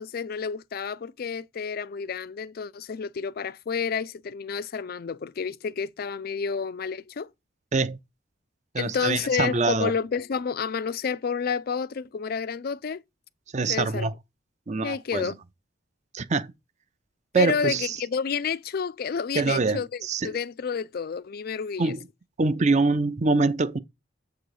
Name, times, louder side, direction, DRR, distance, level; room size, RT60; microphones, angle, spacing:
voice 1, 0.0-7.3 8.8-13.0 13.7-14.1 14.8-15.4 17.3-21.9, left 6 dB, 50° left, 0.4 m, -30 dB
voice 2, 8.7-9.9 13.5-14.1 14.7-15.3 16.1-16.5 17.3-18.0 19.3-20.3 21.8-22.0 22.4-23.8, right 3 dB, 35° right, 0.6 m, -24 dB
7.7 x 3.8 x 4.9 m
head